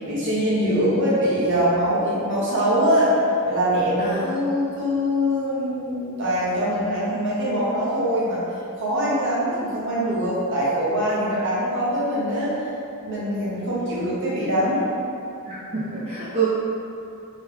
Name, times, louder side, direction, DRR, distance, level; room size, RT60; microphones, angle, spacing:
voice 1, 0.0-3.1 3.4-8.4 8.8-12.6 13.0-14.9, equal, 55° right, -9 dB, 1.2 m, -23 dB
voice 2, 4.0-4.3 7.1-7.2 15.5-16.4, right 5 dB, 30° right, -10 dB, 0.5 m, -27 dB
3.4 x 3.1 x 3.4 m, 2.6 s
head